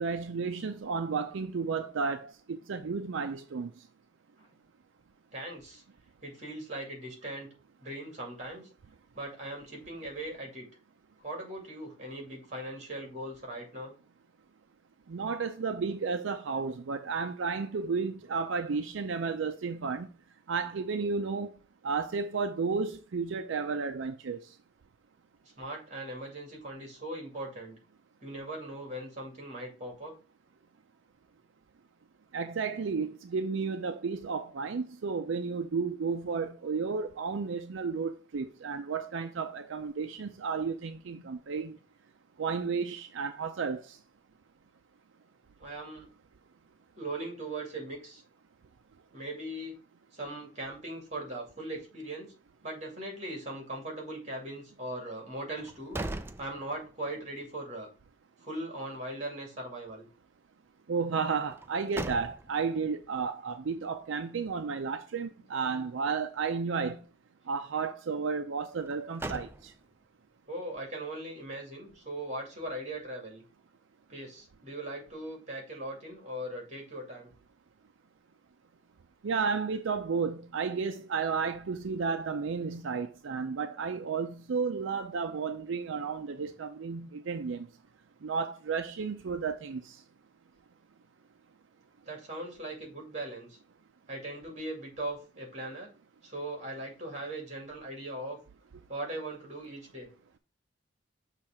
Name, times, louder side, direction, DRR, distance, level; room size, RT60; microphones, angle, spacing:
voice 1, 0.0-3.7 15.1-20.1 20.5-21.5 21.8-24.4 32.3-41.8 42.4-44.0 60.9-67.0 67.5-69.7 79.2-87.7 88.2-90.0, right 5 dB, 80° right, 0.5 m, -32 dB
voice 2, 5.3-5.8 6.2-7.5 7.8-8.7 9.1-10.7 11.2-13.9 25.4-27.8 28.2-30.1 41.1-41.2 45.6-46.1 46.9-48.2 49.1-49.8 50.1-52.3 52.6-56.0 56.4-57.9 58.4-60.1 70.5-73.4 74.1-77.3 92.1-93.6 94.1-95.9 96.2-98.4 98.9-100.1, right 1 dB, 35° right, 2.4 m, -39 dB
sound 1, 55.5-57.2 57.6-57.7 61.5-62.7 68.8-70.1, right 2 dB, 10° right, 0.3 m, -40 dB
6.4 x 3.2 x 5.8 m
head